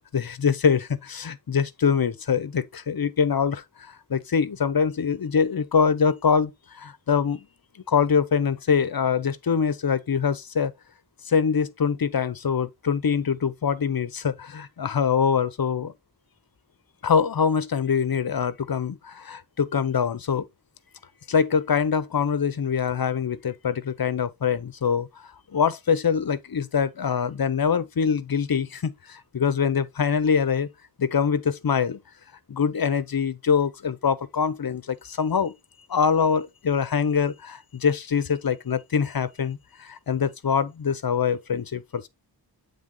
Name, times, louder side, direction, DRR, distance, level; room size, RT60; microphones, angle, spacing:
voice 1, 0.0-7.5 7.9-10.7 11.3-15.9 17.0-20.5 21.3-25.1 25.5-30.7 31.0-32.0 32.5-35.5 35.9-42.1, left 6 dB, 60° left, 0.7 m, -24 dB
8.8 x 3.5 x 3.8 m
wide cardioid pair, 60°, 41 cm